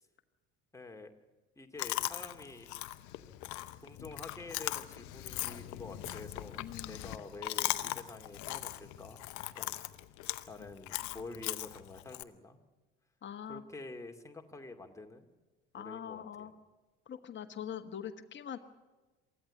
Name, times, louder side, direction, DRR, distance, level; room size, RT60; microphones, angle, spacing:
voice 1, 0.7-1.1 1.6-2.7 3.8-6.6 6.9-9.3 9.5-9.8 10.5-12.6 13.5-15.3 15.7-16.5, left 2 dB, 10° left, 3 dB, 2.3 m, -48 dB
Chewing mastication, 1.8-12.2, left 16 dB, 55° left, 0.9 m, -39 dB
voice 2, 6.6-7.2 11.1-11.2 13.2-13.6 15.7-16.5 17.1-18.6, left 9 dB, 30° left, 6 dB, 1.4 m, -43 dB
24.0 x 14.5 x 8.5 m, 1.2 s
figure-of-eight pair, 55°, 35 cm